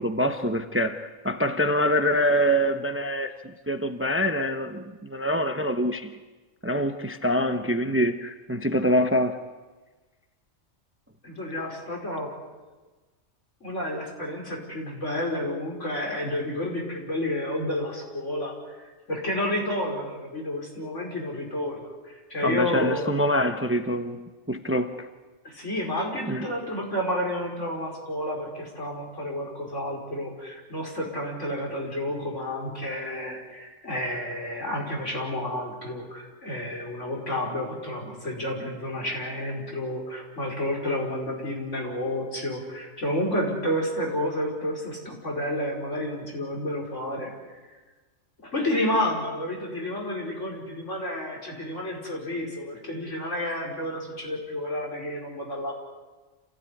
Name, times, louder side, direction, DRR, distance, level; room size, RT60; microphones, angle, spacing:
voice 1, 0.0-6.1 6.6-9.4 22.4-25.1 26.3-26.5, equal, 10° right, 0.9 m, -25 dB
voice 2, 11.2-12.3 13.6-23.1 25.4-47.6 48.4-55.7, left 1 dB, 65° left, 5.6 m, -30 dB
27.5 x 16.5 x 9.8 m
omnidirectional pair, 1.3 m